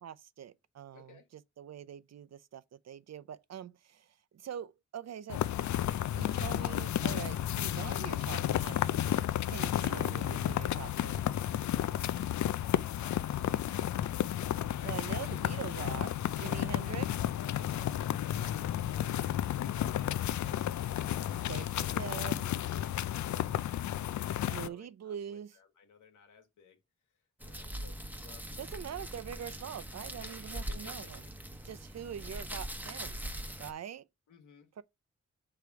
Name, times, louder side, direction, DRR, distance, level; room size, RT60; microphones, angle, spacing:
voice 1, 0.0-5.4 6.1-9.0 9.5-11.3 14.8-17.1 21.5-22.5 24.5-25.6 28.6-31.2 31.6-33.2 33.6-34.1 34.8-34.9, right 9 dB, 60° right, 0.6 m, -43 dB
voice 2, 0.9-1.3 12.8-13.7 14.2-16.8 17.5-18.9 19.5-21.0 22.6-23.6 23.9-26.8 27.4-29.1 30.2-31.3 34.3-34.8, left 6 dB, 90° left, 1.5 m, -57 dB
sound 1, 5.3-24.7, left 11 dB, 70° left, 0.5 m, -32 dB
sound 2, 27.4-33.7, right 1 dB, 5° right, 1.1 m, -42 dB
6.8 x 3.3 x 4.6 m
cardioid pair, 70°, 30 cm